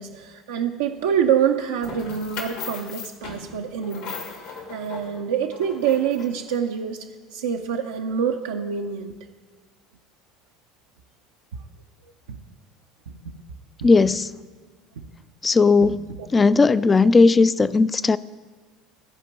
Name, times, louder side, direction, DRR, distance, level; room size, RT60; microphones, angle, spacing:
voice 1, 0.0-9.2 12.3-12.4 13.1-13.4 15.0-15.1, right 8 dB, 75° right, 2 dB, 0.5 m, -26 dB
sound 1, 1.8-6.5, left 5 dB, 70° left, 2.0 m, -37 dB
voice 2, 13.8-14.3 15.4-18.2, left 4 dB, 25° left, 17 dB, 0.4 m, -17 dB
14.5 x 5.1 x 5.9 m, 1.3 s
figure-of-eight pair, 65°, 0 cm